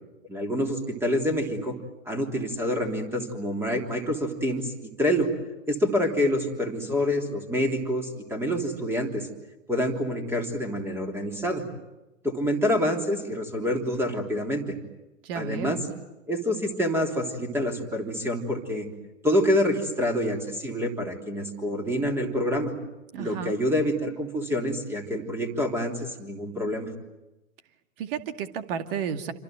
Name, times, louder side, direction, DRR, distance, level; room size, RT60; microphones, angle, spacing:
voice 1, 0.3-1.8 2.0-4.7 5.0-5.3 5.7-9.3 9.7-11.6 12.2-14.7 15.3-15.8 16.3-18.9 19.2-22.7 23.2-26.9, equal, 5° right, 4 dB, 3.3 m, -27 dB
voice 2, 15.2-15.9 23.1-23.6 28.0-29.3, right 7 dB, 40° right, 8 dB, 2.3 m, -32 dB
28.0 x 26.5 x 7.9 m, 1.0 s
figure-of-eight pair, 115°, 41 cm